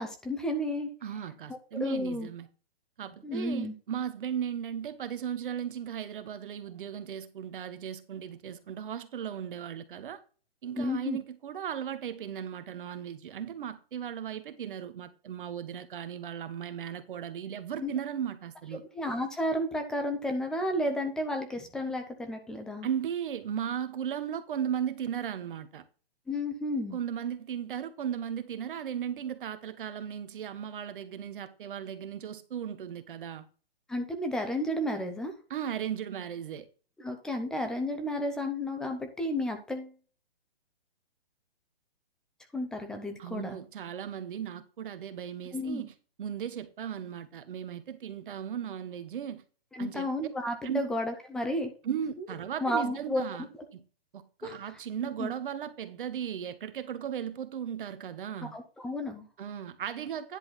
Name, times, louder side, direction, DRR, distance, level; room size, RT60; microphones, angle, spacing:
voice 1, 0.0-0.9 1.8-2.3 3.2-3.7 10.8-11.2 17.8-17.9 18.9-22.9 26.3-27.0 33.9-35.3 37.0-39.9 42.5-43.6 45.5-45.9 49.7-51.7 52.6-53.2 54.4-54.6 55.2-55.3 58.5-59.3, left 1 dB, ahead, 0.6 m, -32 dB
voice 2, 1.0-2.5 3.0-10.2 10.6-18.8 22.8-25.8 26.9-33.5 35.5-36.7 43.2-45.9 46.2-49.4 49.8-50.1 50.6-50.9 51.8-53.8 54.1-58.5 59.4-60.4, right 9 dB, 55° right, 1.5 m, -36 dB
10.5 x 4.2 x 5.8 m
hypercardioid pair, 160°, 32 cm